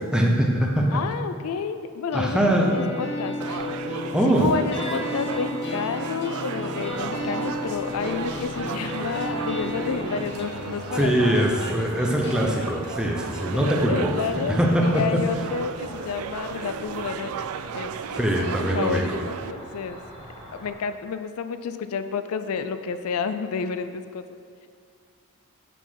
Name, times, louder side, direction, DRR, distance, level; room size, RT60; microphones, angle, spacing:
voice 1, 0.0-1.0 2.1-2.7 4.1-4.5 10.9-14.1 14.5-15.2 18.2-19.2, equal, 5° right, 0 dB, 0.7 m, -22 dB
voice 2, 0.9-3.7 4.2-11.6 13.5-17.5 17.7-18.3 18.6-20.0 20.5-24.2, left 5 dB, 75° left, 10 dB, 0.4 m, -30 dB
sound 1, 2.1-16.1, left 2 dB, 50° left, 1.3 m, -34 dB
sound 2, 3.4-19.5, right 7 dB, 75° right, 0.3 m, -35 dB
Cricket, 6.9-20.7, equal, 25° right, 1.5 m, -43 dB
8.9 x 4.3 x 5.8 m, 2.3 s
head